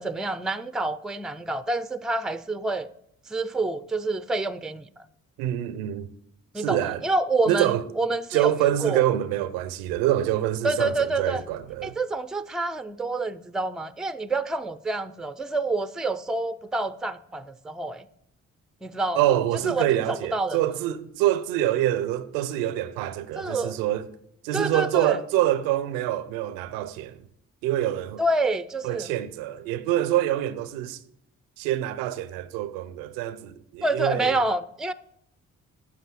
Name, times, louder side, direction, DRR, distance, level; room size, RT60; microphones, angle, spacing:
voice 1, 0.0-2.9 3.3-5.0 6.5-9.0 10.6-11.4 11.8-18.1 18.8-19.2 19.6-20.6 23.4-23.8 24.5-25.2 28.2-29.1 33.8-34.9, right 2 dB, ahead, 0.5 m, -28 dB
voice 2, 5.4-6.1 6.6-7.0 7.5-7.9 8.3-12.0 19.1-24.1 24.4-27.2 27.6-28.2 28.8-31.0 31.6-34.4, right 13 dB, 90° right, 0.6 m, -26 dB
8.3 x 7.3 x 6.1 m
hypercardioid pair, 45°, 35 cm